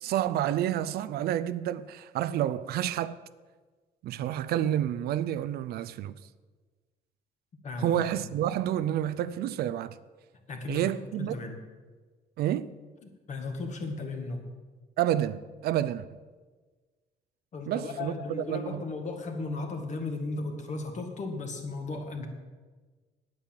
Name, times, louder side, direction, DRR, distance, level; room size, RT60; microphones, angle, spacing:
voice 1, 0.0-3.2 4.0-6.2 7.8-10.0 10.7-11.3 12.4-12.7 15.0-16.0 17.7-18.8, right 11 dB, 70° right, 0.5 m, -29 dB
voice 2, 7.6-8.2 10.5-10.8 11.2-11.6 13.0-14.4 17.5-22.3, left 3 dB, 45° left, 2.1 m, -36 dB
9.0 x 9.0 x 7.5 m
cardioid pair, 110°, 17 cm